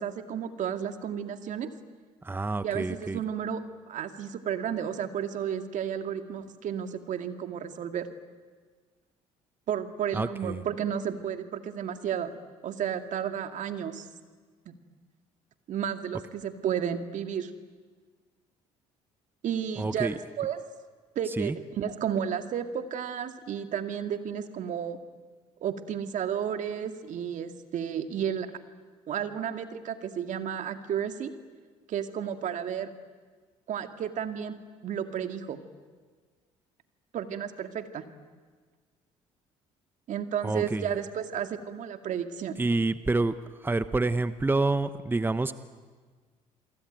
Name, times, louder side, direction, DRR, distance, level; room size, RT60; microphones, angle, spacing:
voice 1, 0.0-1.7 2.6-3.6 3.9-8.1 9.7-12.3 12.6-14.1 14.7-14.8 15.7-17.5 19.4-20.6 21.2-25.0 25.6-28.5 29.1-31.3 31.9-32.9 33.7-35.6 37.1-38.0 40.1-42.6, right 8 dB, 60° right, 8 dB, 2.2 m, -32 dB
voice 2, 2.2-3.2 10.1-10.6 19.8-20.1 21.4-21.5 40.4-40.8 42.6-43.3 43.6-45.5, right 2 dB, 15° right, 13 dB, 1.0 m, -27 dB
28.0 x 23.5 x 9.2 m, 1.5 s
supercardioid pair, 65°, 14 cm